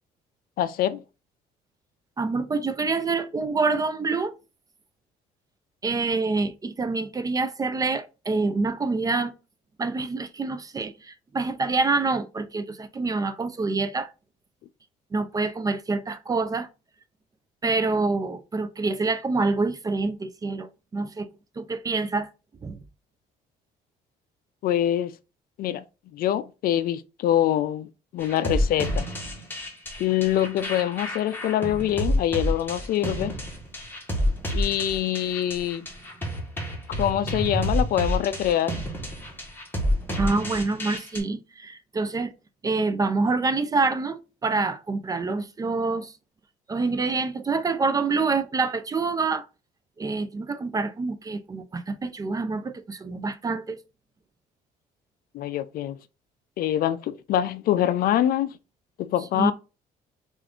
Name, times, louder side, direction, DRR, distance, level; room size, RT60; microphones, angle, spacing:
voice 1, 0.6-1.0 24.6-25.1 25.6-25.8 26.1-27.9 28.1-29.1 30.0-33.4 34.5-35.9 37.0-38.8 55.3-56.0 56.6-58.5 59.0-59.5, left 11 dB, 60° left, 0.4 m, -24 dB
voice 2, 2.2-4.3 5.8-9.3 9.8-14.1 15.1-16.7 17.6-21.3 21.6-22.3 22.6-22.8 40.2-42.3 42.6-46.1 46.7-49.5 50.0-53.8 59.3-59.5, right 3 dB, 20° right, 0.4 m, -26 dB
sound 1, 28.2-41.2, equal, 10° left, 1.3 m, -29 dB
3.5 x 2.5 x 3.5 m
cardioid pair, 110°, 17 cm